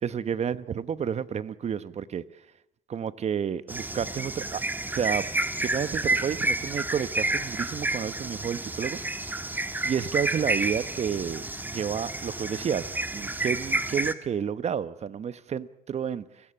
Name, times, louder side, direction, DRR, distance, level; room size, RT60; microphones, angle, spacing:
voice 1, 0.0-2.2 2.9-4.6 4.9-5.3 5.6-9.0 9.8-16.2, right 8 dB, 40° right, 15 dB, 1.0 m, -30 dB
sound 1, 3.7-14.1, right 2 dB, 10° right, 1.4 m, -30 dB
30.0 x 17.0 x 8.8 m, 0.86 s
cardioid pair, 110°, 17 cm